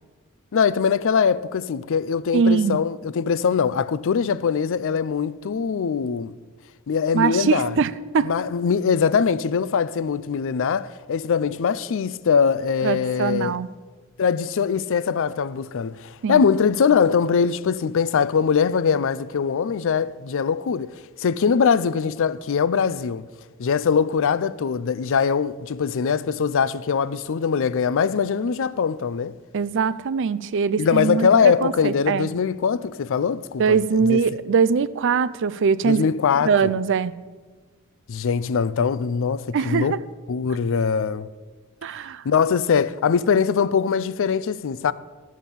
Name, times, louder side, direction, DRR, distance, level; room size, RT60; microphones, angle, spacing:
voice 1, 0.5-6.3 6.9-7.7 8.2-13.5 14.2-20.9 21.2-23.2 23.6-29.4 30.8-33.8 34.1-34.2 35.8-36.7 38.1-40.0 40.3-41.3 42.2-44.9, left 6 dB, 65° left, 0.4 m, -22 dB
voice 2, 2.3-2.8 7.1-8.3 12.8-13.7 16.2-16.5 29.5-32.3 33.6-36.0 36.4-37.1 39.5-40.0 41.8-42.2, right 5 dB, 60° right, 0.4 m, -22 dB
12.5 x 7.4 x 6.9 m
head